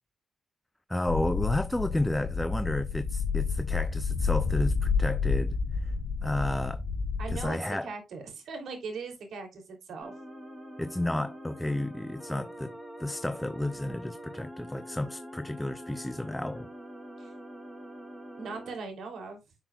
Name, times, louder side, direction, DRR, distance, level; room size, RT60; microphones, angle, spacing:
voice 1, 0.9-5.9 6.2-6.8 7.3-7.9 10.8-12.7 13.0-16.7, left 1 dB, 10° left, 0.5 m, -32 dB
sound 1, 1.1-7.5, left 5 dB, 75° left, 3.4 m, -29 dB
voice 2, 7.2-10.1 17.2-17.3 18.4-19.4, right 4 dB, 75° right, 3.1 m, -39 dB
sound 2, 10.0-18.7, equal, 10° right, 3.0 m, -44 dB
10.5 x 6.1 x 2.4 m
cardioid pair, 105°, 0 cm